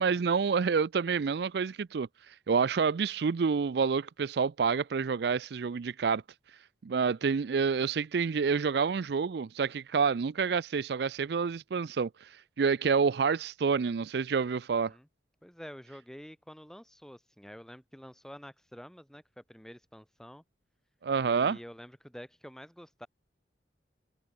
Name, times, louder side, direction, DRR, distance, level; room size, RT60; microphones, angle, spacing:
voice 1, 0.0-6.2 6.8-14.9 21.0-21.6, right 5 dB, 65° right, 0.4 m, -28 dB
voice 2, 15.4-20.4 21.2-23.1, equal, 5° left, 1.4 m, -48 dB
head